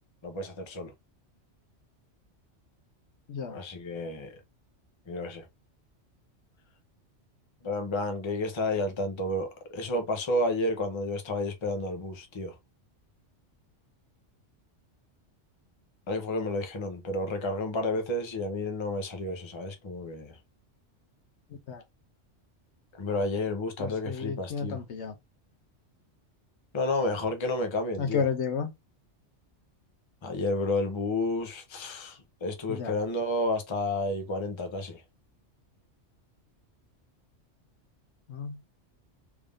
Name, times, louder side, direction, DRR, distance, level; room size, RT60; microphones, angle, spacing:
voice 1, 0.2-0.9 3.5-4.3 5.1-5.4 7.6-12.5 16.1-20.4 23.0-24.8 26.7-28.2 30.2-35.0, left 2 dB, 30° left, 0.7 m, -31 dB
voice 2, 23.8-25.1 28.0-28.7 32.7-32.9 38.3-38.7, left 6 dB, 70° left, 1.0 m, -32 dB
3.4 x 2.6 x 3.5 m
omnidirectional pair, 1.2 m